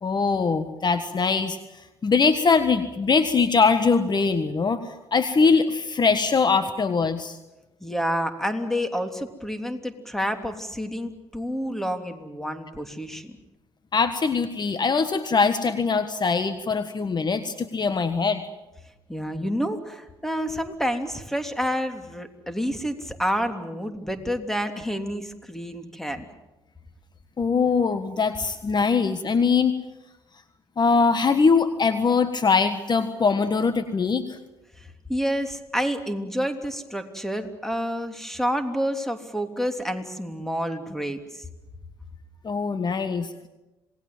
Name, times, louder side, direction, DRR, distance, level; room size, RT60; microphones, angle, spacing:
voice 1, 0.0-1.6 2.0-4.8 5.1-7.4 13.9-18.4 27.4-29.7 30.8-34.4 42.4-43.3, left 5 dB, 35° left, 10 dB, 1.5 m, -22 dB
voice 2, 7.8-13.3 19.1-26.3 34.8-41.4, equal, 5° left, 6 dB, 3.2 m, -29 dB
27.0 x 19.5 x 7.7 m, 1.0 s
hypercardioid pair, 55°, 12 cm